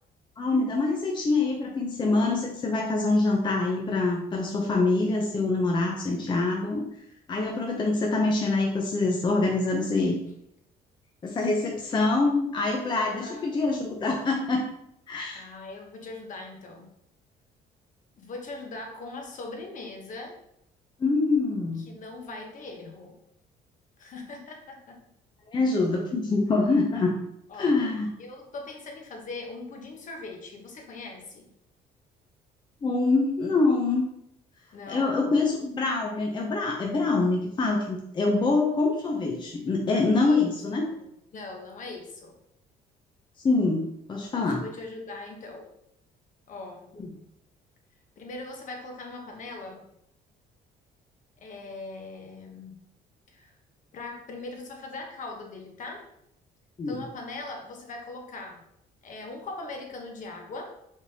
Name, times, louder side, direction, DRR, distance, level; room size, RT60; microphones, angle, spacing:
voice 1, 0.4-6.9 7.3-10.2 11.2-14.7 15.1-15.5 21.0-21.9 25.5-27.1 27.6-28.1 32.8-34.1 34.9-40.8 43.4-44.6 47.0-47.1 56.8-57.0, left 3 dB, 25° left, 0 dB, 0.6 m, -25 dB
voice 2, 13.0-13.5 15.3-16.9 18.2-20.4 21.8-23.2 24.0-25.1 27.5-27.9 28.2-31.5 34.7-35.2 40.2-40.6 40.9-42.4 44.4-45.7 46.5-46.9 48.2-49.8 51.4-52.8 53.3-53.5 53.9-56.1 56.9-58.6 59.0-60.8, left 2 dB, 50° left, 2 dB, 1.0 m, -40 dB
5.1 x 3.3 x 2.8 m, 0.77 s
cardioid pair, 110°, 17 cm